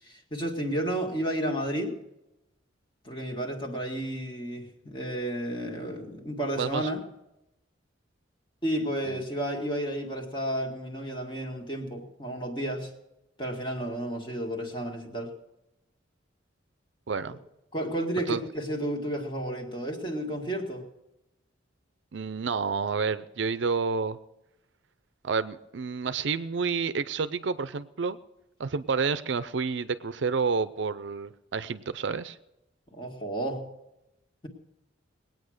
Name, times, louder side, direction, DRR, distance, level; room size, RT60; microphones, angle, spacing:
voice 1, 0.0-2.0 3.0-7.0 8.6-12.9 13.4-15.3 17.3-17.4 17.7-20.9 32.9-33.7, right 1 dB, 25° left, 2 dB, 2.0 m, -32 dB
voice 2, 6.6-6.9 9.1-9.2 17.1-17.4 18.3-18.4 22.1-24.2 25.2-28.2 28.6-32.4, right 5 dB, 65° right, 13 dB, 0.5 m, -29 dB
20.0 x 9.2 x 6.5 m, 0.92 s
head